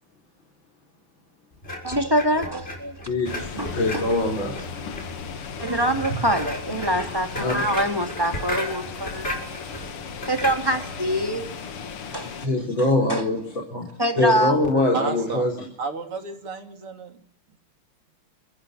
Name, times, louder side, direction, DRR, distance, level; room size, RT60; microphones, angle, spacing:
sound 1, 1.6-11.0, equal, 25° left, 6.8 m, -34 dB
voice 1, 1.8-3.0 3.6-3.7 5.6-9.3 10.2-11.4 12.1-12.5 13.1-13.2 14.0-14.6, equal, 10° right, 2.3 m, -24 dB
voice 2, 3.1-4.6 7.4-7.7 12.4-13.4 13.7-13.8 14.2-15.6, left 1 dB, 60° left, 5.0 m, -23 dB
sound 2, 3.3-12.5, left 6 dB, 85° left, 2.6 m, -37 dB
voice 3, 14.9-15.4 15.8-17.2, right 4 dB, 80° right, 3.7 m, -32 dB
29.5 x 15.5 x 9.9 m
omnidirectional pair, 2.4 m